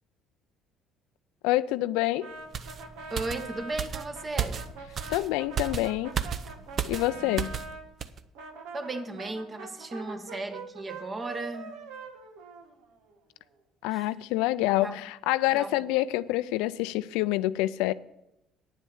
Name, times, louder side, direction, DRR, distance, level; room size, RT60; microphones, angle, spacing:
voice 1, 1.4-2.3 5.1-6.1 6.9-7.6 13.8-17.9, left 16 dB, 85° left, 0.4 m, -27 dB
Brass instrument, 2.2-7.8 8.4-13.1, right 4 dB, 85° right, 1.5 m, -43 dB
sound 1, 2.5-7.7 8.0-8.2, right 7 dB, 50° right, 0.7 m, -34 dB
voice 2, 3.1-4.7 7.2-7.6 8.7-11.8 13.9-14.1 14.8-15.0 15.5-15.7, right 2 dB, 30° right, 1.3 m, -36 dB
9.5 x 7.4 x 7.1 m
supercardioid pair, 80°, 0 cm